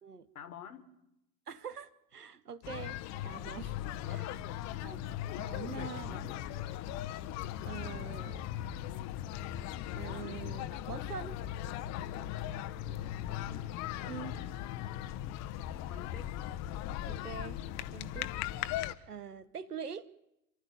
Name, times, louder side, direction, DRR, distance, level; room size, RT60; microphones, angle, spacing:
voice 1, 0.3-0.9 4.7-5.0 5.9-6.6 12.8-13.7 14.0-15.2 15.9-16.4, left 7 dB, 70° left, 13 dB, 1.8 m, -51 dB
voice 2, 1.5-3.0 3.2-3.8 4.0-4.5 4.8-6.3 7.6-8.5 9.6-11.4 14.0-14.3 17.1-17.6 17.9-18.3 19.1-20.1, right 7 dB, 80° right, 17 dB, 1.1 m, -44 dB
sound 1, 2.6-18.9, left 12 dB, 35° left, 1.0 m, -38 dB
28.0 x 12.0 x 9.4 m, 0.86 s
figure-of-eight pair, 80°, 46 cm